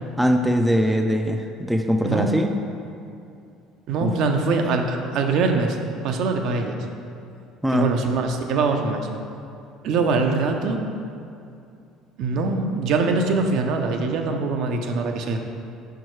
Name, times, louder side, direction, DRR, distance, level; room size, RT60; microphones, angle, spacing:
voice 1, 0.2-2.5 4.0-4.1 7.6-7.9, equal, 5° right, 4 dB, 0.3 m, -21 dB
voice 2, 2.0-2.5 3.9-5.8 6.0-6.8 7.7-9.1 9.8-10.8 12.2-15.4, right 4 dB, 65° right, 4 dB, 0.6 m, -23 dB
5.4 x 4.7 x 4.6 m, 2.5 s
cardioid pair, 115°, 0 cm